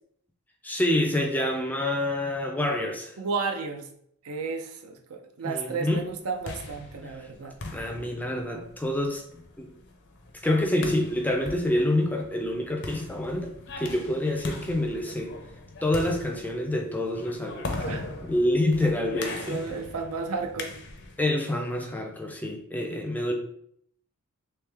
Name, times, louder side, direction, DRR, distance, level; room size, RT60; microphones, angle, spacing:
voice 1, 0.6-3.2 5.4-6.0 7.0-7.1 7.7-9.2 9.6-9.7 10.4-15.3 15.8-17.7 18.2-19.6 21.2-23.3, left 1 dB, 5° left, 2 dB, 0.4 m, -27 dB
voice 2, 3.2-3.9 4.2-7.5 17.5-18.0 19.2-20.7, right 4 dB, 75° right, 4 dB, 0.5 m, -33 dB
sound 1, 6.1-21.3, left 2 dB, 50° left, 0.6 m, -40 dB
3.4 x 3.1 x 3.4 m, 0.69 s
head